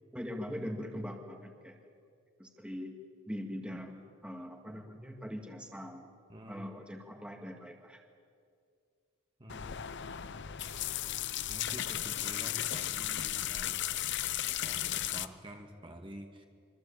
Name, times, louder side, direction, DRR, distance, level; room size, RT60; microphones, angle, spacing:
voice 1, 0.1-1.8 2.4-3.0 3.3-6.1 6.5-8.0, equal, 5° right, 3 dB, 2.2 m, -42 dB
voice 2, 6.3-6.6 9.4-9.8 11.5-13.8 14.6-16.4, equal, 25° right, 3 dB, 2.0 m, -48 dB
sound 1, 9.5-15.3, left 12 dB, 55° left, 0.8 m, -35 dB
26.0 x 24.5 x 8.8 m, 2.2 s
head